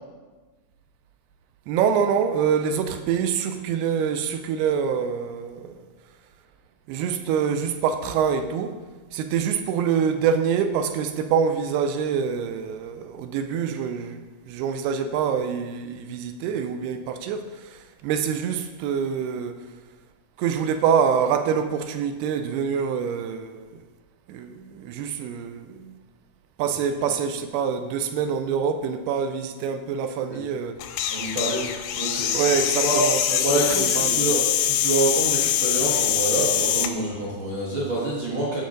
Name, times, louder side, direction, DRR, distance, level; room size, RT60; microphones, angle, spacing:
voice 1, 1.7-5.8 6.9-8.8 9.1-19.6 20.4-23.8 24.3-25.9 26.6-30.8 32.3-33.4 33.8-34.2, right 7 dB, 80° right, 2.5 m, -25 dB
sound 1, 30.8-36.9, left 10 dB, 85° left, 2.1 m, -24 dB
voice 2, 31.1-31.6 31.9-32.3 32.8-33.0 33.3-38.6, right 2 dB, 50° right, 1.4 m, -26 dB
15.0 x 5.7 x 3.8 m
omnidirectional pair, 4.7 m